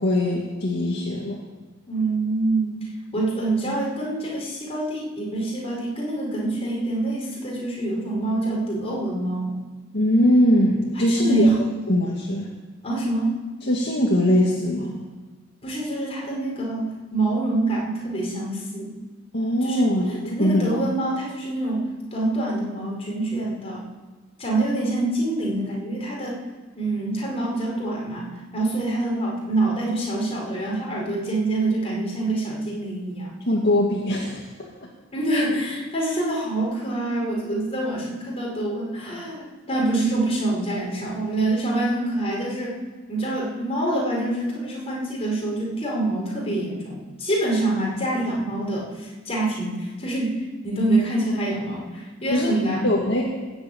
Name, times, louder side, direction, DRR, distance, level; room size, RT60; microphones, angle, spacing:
voice 1, 0.0-1.4 9.9-11.5 11.9-12.5 13.6-15.0 19.3-20.7 33.5-34.7 52.3-52.5 52.8-53.2, left 1 dB, 60° left, -2 dB, 2.0 m, -21 dB
voice 2, 1.9-2.8 3.1-9.5 10.9-11.7 12.8-13.3 15.6-19.0 19.6-19.9 20.3-21.8 22.1-23.9 24.4-26.4 26.8-33.3 35.1-42.8 43.1-50.4 50.6-52.9, right 2 dB, 30° left, -3 dB, 4.9 m, -26 dB
19.5 x 8.0 x 8.7 m, 1.3 s
head